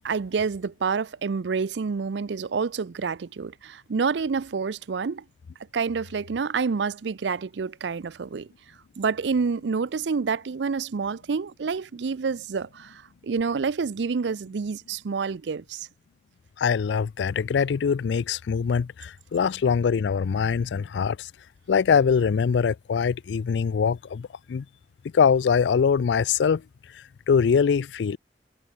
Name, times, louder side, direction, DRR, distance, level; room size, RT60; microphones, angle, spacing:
voice 1, 0.0-5.2 5.7-8.5 9.0-15.9, right 5 dB, 85° right, 0.5 m, -28 dB
voice 2, 16.6-21.3 21.7-24.6 25.1-26.6 27.3-28.2, left 6 dB, 85° left, 0.4 m, -23 dB
head